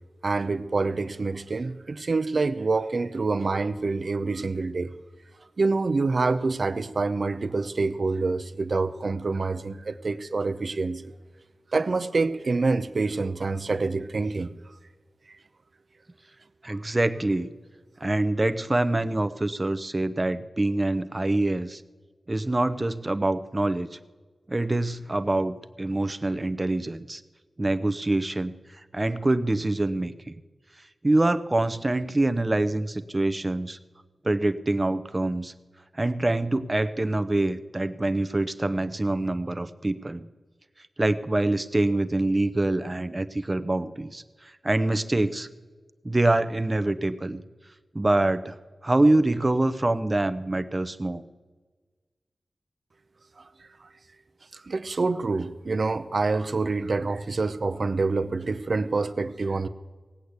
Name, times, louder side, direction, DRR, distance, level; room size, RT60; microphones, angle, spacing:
voice 1, 0.2-4.9 5.6-11.0 11.7-14.5 16.7-16.9 53.4-53.5 53.8-53.9 54.5-59.7, right 3 dB, 60° right, 0.7 m, -26 dB
voice 2, 16.6-17.5 18.0-21.8 22.3-24.0 24.5-27.2 27.6-28.5 28.9-30.4 31.0-33.8 34.2-35.5 35.9-40.3 41.0-45.5 46.0-47.4 47.9-48.6 48.8-51.2, right 2 dB, 25° right, 0.7 m, -25 dB
17.5 x 8.3 x 8.1 m
wide cardioid pair, 80°, 0 cm